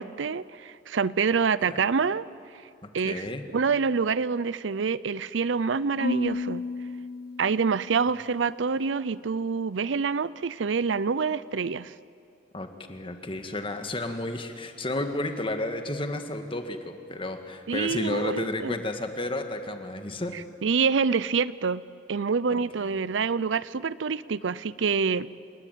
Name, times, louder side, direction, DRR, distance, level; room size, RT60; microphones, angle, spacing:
voice 1, 0.0-2.3 2.5-2.6 2.9-3.2 3.5-6.6 7.4-11.9 17.7-18.8 20.3-21.8 22.1-25.3, right 5 dB, 85° right, 18 dB, 0.5 m, -26 dB
voice 2, 3.0-3.5 12.5-20.3 22.8-22.9, left 2 dB, 30° left, 7 dB, 1.8 m, -32 dB
Marimba xylophone / Wood, 6.0-8.2, left 3 dB, 55° left, 0.7 m, -32 dB
29.5 x 18.5 x 9.2 m, 2.5 s
head